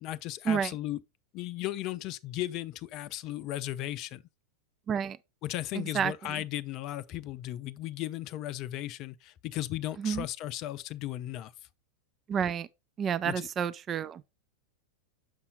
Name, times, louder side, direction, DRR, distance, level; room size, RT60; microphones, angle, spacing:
voice 1, 0.0-1.0 1.3-4.2 5.4-11.5 13.2-13.5, left 14 dB, 40° left, 0.5 m, -36 dB
voice 2, 12.3-12.7 13.0-14.2, right 7 dB, 25° right, 0.4 m, -29 dB
7.4 x 5.6 x 3.9 m
figure-of-eight pair, 90°, 0 cm